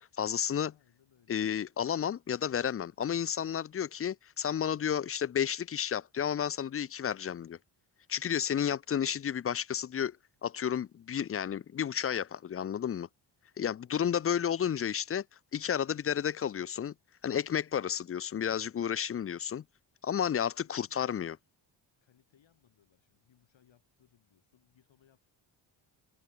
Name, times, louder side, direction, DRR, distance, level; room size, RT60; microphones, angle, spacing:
voice 1, 0.2-0.7 1.3-7.6 8.1-10.2 10.4-13.1 13.6-15.2 15.5-16.9 17.2-19.6 20.0-21.4, left 8 dB, 30° left, 0.4 m, -32 dB
voice 2, 0.7-1.5 19.9-20.0 20.3-21.4 22.0-25.2, left 9 dB, 65° left, 6.8 m, -68 dB
cardioid pair, 105°, 48 cm